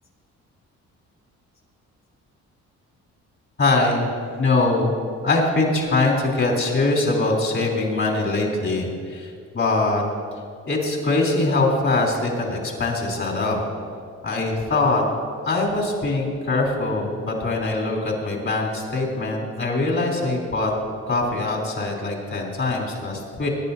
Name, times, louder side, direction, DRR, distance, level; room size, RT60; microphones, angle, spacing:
voice 1, 3.6-4.1 4.4-4.9 5.2-10.0 10.7-13.6 14.2-15.0 15.5-20.7 21.1-23.5, left 2 dB, 45° left, -1 dB, 3.6 m, -22 dB
23.0 x 10.5 x 2.8 m, 2.3 s
cardioid pair, 90°, 30 cm